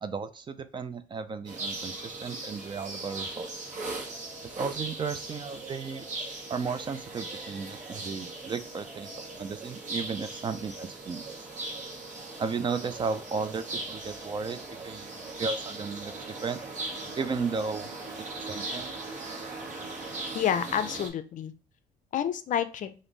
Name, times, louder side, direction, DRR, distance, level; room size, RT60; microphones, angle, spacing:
voice 1, 0.0-3.5 4.6-6.0 6.5-11.4 12.4-15.1 15.4-16.6 17.2-17.9 18.3-18.9, right 5 dB, 30° right, 11 dB, 0.4 m, -34 dB
sound 1, 1.4-21.1, right 2 dB, 45° right, 1.2 m, -39 dB
voice 2, 20.3-21.5 22.1-22.9, left 9 dB, 50° left, 11 dB, 0.5 m, -29 dB
3.4 x 2.6 x 3.9 m, 0.37 s
cardioid pair, 110°, 17 cm